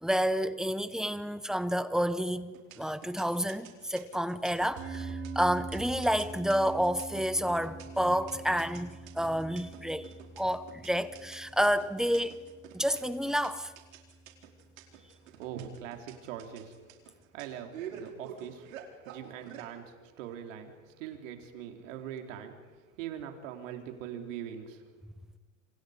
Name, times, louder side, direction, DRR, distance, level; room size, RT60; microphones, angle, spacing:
voice 1, 0.0-12.4 12.7-13.7, equal, ahead, 0.8 m, -30 dB
sound 1, 2.5-19.7, right 9 dB, 80° right, 4.7 m, -47 dB
sound 2, 4.8-15.2, right 3 dB, 35° right, 5.6 m, -45 dB
voice 2, 15.3-16.7 17.3-18.7 19.0-25.0, right 9 dB, 65° right, 3.9 m, -42 dB
29.5 x 26.5 x 5.2 m
supercardioid pair, 130°, 40 cm